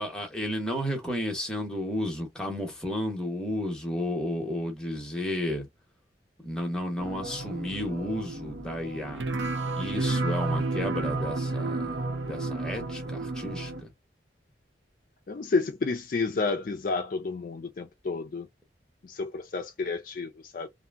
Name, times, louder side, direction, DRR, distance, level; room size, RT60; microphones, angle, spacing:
voice 1, 0.0-5.7 6.4-9.3 9.8-13.9, left 1 dB, 5° left, 0.9 m, -32 dB
sound 1, 7.0-13.8, right 2 dB, 85° right, 0.7 m, -31 dB
voice 2, 15.3-18.5 19.0-20.7, left 4 dB, 50° left, 0.4 m, -30 dB
2.7 x 2.5 x 2.4 m
head